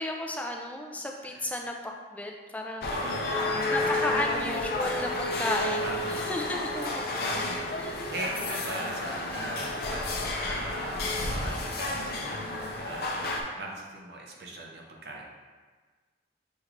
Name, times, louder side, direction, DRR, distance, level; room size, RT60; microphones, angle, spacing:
voice 1, 0.0-1.8 2.1-3.3 3.7-7.0 7.8-7.9, left 1 dB, 10° left, 1 dB, 0.4 m, -33 dB
sound 1, 2.8-13.4, left 2 dB, 60° left, 0.6 m, -31 dB
voice 2, 2.9-3.7 5.8-6.3 7.2-15.2, right 2 dB, 65° right, 0 dB, 0.7 m, -40 dB
6.4 x 3.1 x 2.5 m, 1.4 s
head